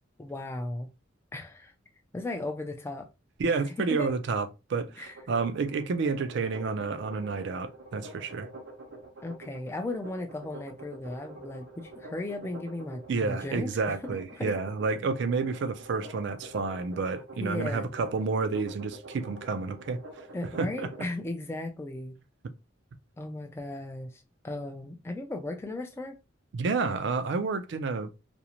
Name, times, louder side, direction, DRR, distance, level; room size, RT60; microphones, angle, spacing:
voice 1, 0.2-0.9 1.3-1.7 2.1-3.1 3.8-4.1 5.0-5.1 9.2-14.0 14.4-14.5 17.4-17.9 20.3-22.2 23.2-26.2, left 2 dB, 15° left, 0.3 m, -36 dB
voice 2, 3.4-8.5 13.1-20.0 20.6-20.9 26.5-28.1, right 4 dB, 65° right, 0.4 m, -30 dB
sound 1, 5.1-21.1, right 2 dB, 85° right, 0.7 m, -46 dB
2.5 x 2.0 x 2.8 m
head